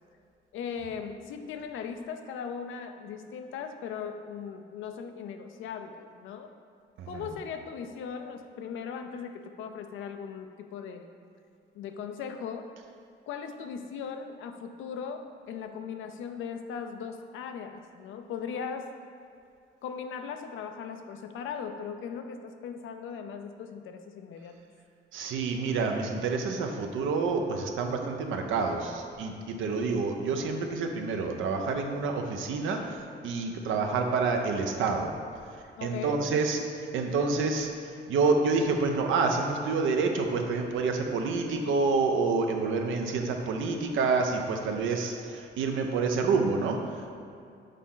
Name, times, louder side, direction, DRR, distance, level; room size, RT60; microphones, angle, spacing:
voice 1, 0.5-6.5 7.1-11.1 11.7-12.7 13.3-18.9 19.8-24.6 35.8-36.3, left 6 dB, 80° left, 6 dB, 0.5 m, -38 dB
voice 2, 25.1-33.0 33.2-35.1 35.8-36.6 36.9-37.7 38.1-47.1, right 4 dB, 80° right, 3 dB, 0.7 m, -28 dB
6.6 x 4.2 x 3.8 m, 2.5 s
cardioid pair, 90°, 20 cm